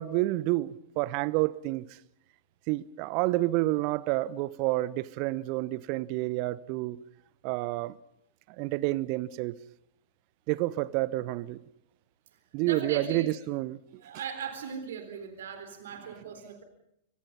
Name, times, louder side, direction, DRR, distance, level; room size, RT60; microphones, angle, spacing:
voice 1, 0.0-1.9 2.7-7.0 7.4-7.9 8.6-9.6 10.5-11.6 12.5-14.0, right 18 dB, 40° right, 0.9 m, -29 dB
voice 2, 12.6-13.3 14.0-16.6, right 6 dB, 60° right, 3.8 m, -38 dB
30.0 x 25.0 x 5.5 m
figure-of-eight pair, 100°, 0 cm